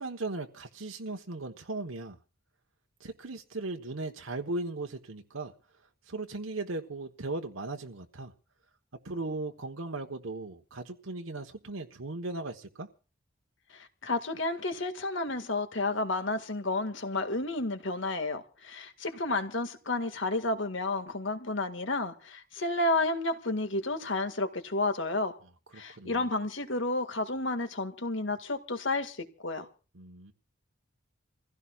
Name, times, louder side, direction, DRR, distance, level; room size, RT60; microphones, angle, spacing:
voice 1, 0.0-2.2 3.0-5.5 6.1-8.3 9.0-12.9 25.7-26.3 29.9-30.3, right 2 dB, 75° right, 1.2 m, -37 dB
voice 2, 13.7-25.3 25.8-29.7, left 2 dB, 65° left, 1.9 m, -31 dB
28.0 x 16.0 x 2.4 m
head